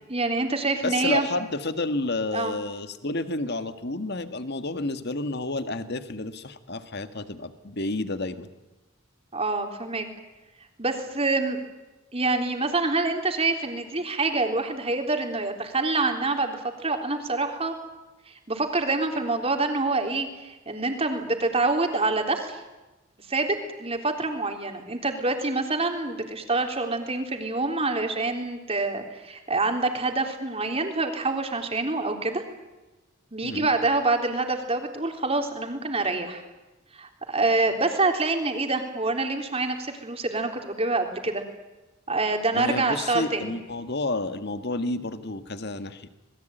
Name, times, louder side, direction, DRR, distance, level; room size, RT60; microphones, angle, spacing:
voice 1, 0.1-1.3 2.3-2.5 9.3-10.1 10.8-11.6 12.1-17.8 18.5-22.6 23.3-32.4 33.3-36.4 36.9-41.4 42.1-43.5, right 3 dB, 30° right, 4 dB, 3.7 m, -26 dB
voice 2, 0.8-8.5 33.4-33.7 42.5-46.1, left 2 dB, 50° left, 10 dB, 1.8 m, -30 dB
27.0 x 21.0 x 9.2 m, 1.1 s
head